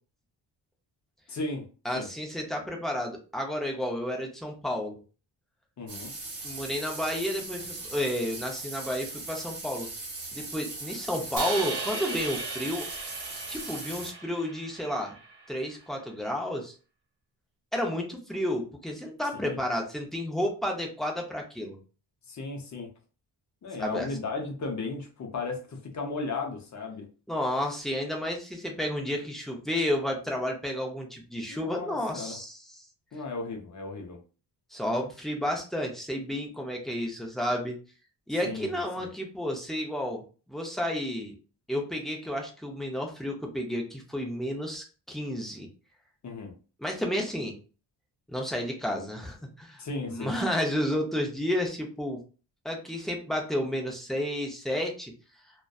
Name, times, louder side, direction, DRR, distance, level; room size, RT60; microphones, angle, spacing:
voice 1, 1.3-1.7 1.9-2.1 5.8-6.1 19.3-19.6 22.3-22.9 23.6-27.0 31.5-32.4 33.1-34.2 38.4-39.1 46.2-46.5 49.8-50.3, left 3 dB, 40° left, 2 dB, 0.6 m, -35 dB
voice 2, 1.8-5.0 6.4-9.9 10.3-12.8 13.5-15.2 15.5-16.7 17.7-21.8 23.8-24.1 27.3-32.6 34.7-37.8 38.3-40.2 40.5-41.3 41.7-45.7 46.8-47.6 48.3-49.8 50.1-52.2 52.6-55.1, equal, ahead, 0 dB, 0.4 m, -31 dB
sound 1, 5.9-14.1, right 3 dB, 50° right, 1.1 m, -39 dB
Crash cymbal, 11.4-15.6, right 4 dB, 75° right, 0.8 m, -37 dB
2.6 x 2.2 x 2.3 m, 0.36 s
wide cardioid pair, 155°, 43 cm